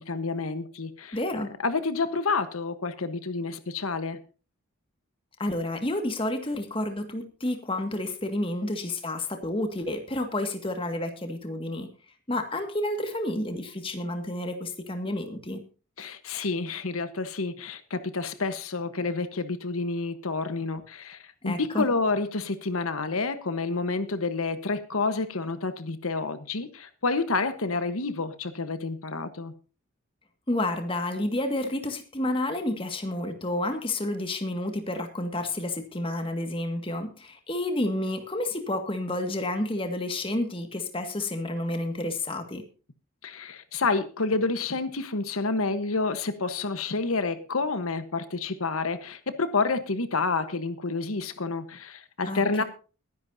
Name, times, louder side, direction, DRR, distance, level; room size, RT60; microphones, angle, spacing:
voice 1, 0.0-1.2 1.6-4.2 16.0-29.5 43.2-52.6, left 3 dB, 85° left, 11 dB, 1.2 m, -29 dB
voice 2, 1.1-1.5 5.4-11.9 12.3-15.6 21.5-21.9 30.5-42.6 52.2-52.6, left 1 dB, 25° left, 6 dB, 1.9 m, -30 dB
21.5 x 10.5 x 2.7 m, 0.34 s
head